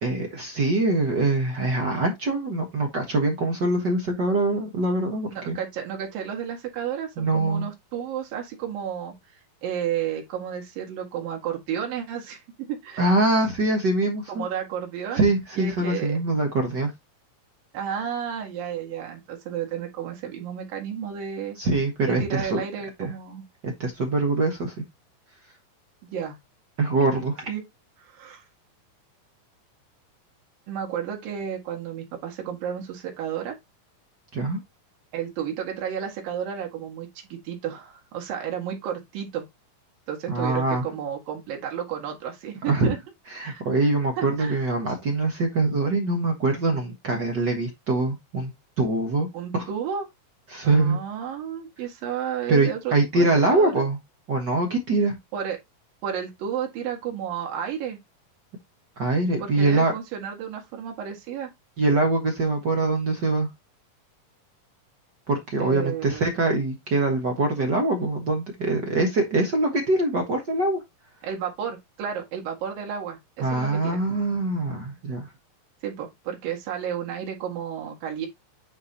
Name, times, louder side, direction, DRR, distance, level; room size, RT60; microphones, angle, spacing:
voice 1, 0.0-5.6 7.2-7.7 13.0-14.5 15.1-16.9 21.6-22.6 23.0-23.1 23.6-24.7 26.8-27.4 34.3-34.6 40.3-40.8 42.7-42.9 43.3-48.5 48.8-49.3 49.5-49.7 50.5-51.0 52.5-54.0 54.3-55.1 59.0-59.9 61.8-63.5 65.3-70.8 73.4-75.3, right 2 dB, 55° right, 1.2 m, -23 dB
voice 2, 5.3-12.4 12.7-13.1 14.3-15.3 15.6-16.2 17.7-21.6 22.1-23.4 26.0-26.4 27.5-27.6 28.0-28.4 30.7-33.6 35.1-39.5 40.1-43.0 43.4-43.6 44.2-44.7 49.3-50.1 50.6-53.9 55.3-55.6 56.0-58.0 59.4-61.5 65.6-66.3 71.2-74.0 75.8-78.3, right 8 dB, 80° right, 3.5 m, -32 dB
9.6 x 4.7 x 2.8 m
omnidirectional pair, 4.0 m